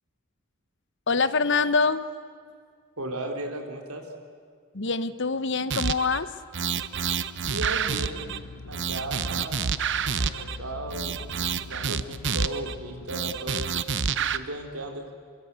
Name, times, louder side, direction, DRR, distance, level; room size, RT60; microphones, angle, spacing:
voice 1, 1.1-2.0 4.7-6.3, left 4 dB, 55° left, 13 dB, 1.0 m, -24 dB
voice 2, 3.0-4.1 7.4-8.3 8.7-9.6 10.1-11.2 11.5-13.8 14.2-15.0, right 1 dB, 85° right, 3 dB, 3.7 m, -36 dB
sound 1, 5.7-6.2 6.5-8.4 8.7-10.6 10.9-12.8 13.1-14.4, right 6 dB, 55° right, 0.8 m, -28 dB
sound 2, 7.4-13.2, left 3 dB, 90° left, 1.0 m, -43 dB
26.0 x 23.0 x 8.3 m, 2.1 s
head